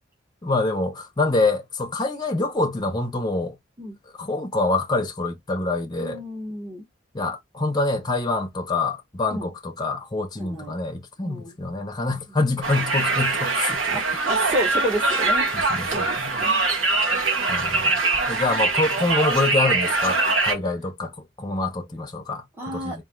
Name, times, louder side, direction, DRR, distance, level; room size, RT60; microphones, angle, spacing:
voice 1, 0.4-3.6 4.2-6.2 7.1-14.0 15.7-16.4 17.5-18.0 18.3-20.2 20.4-21.1 21.4-23.0, left 2 dB, 20° left, 0.8 m, -26 dB
voice 2, 6.0-6.9 9.3-9.5 10.4-10.7 11.2-11.6 13.9-16.6 17.1-17.8 22.6-23.0, equal, 10° right, 1.2 m, -31 dB
Conversation, 12.6-20.5, right 3 dB, 70° right, 1.1 m, -23 dB
4.3 x 2.6 x 3.8 m
head